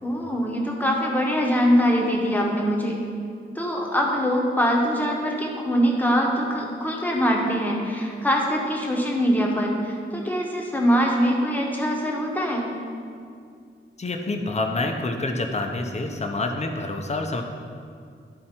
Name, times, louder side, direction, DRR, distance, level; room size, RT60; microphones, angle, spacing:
voice 1, 0.0-3.0 3.5-12.7, equal, 10° left, -1 dB, 1.0 m, -23 dB
voice 2, 14.0-17.4, left 2 dB, 30° left, 4 dB, 0.6 m, -27 dB
12.5 x 4.5 x 4.4 m, 2.3 s
wide cardioid pair, 175°, 21 cm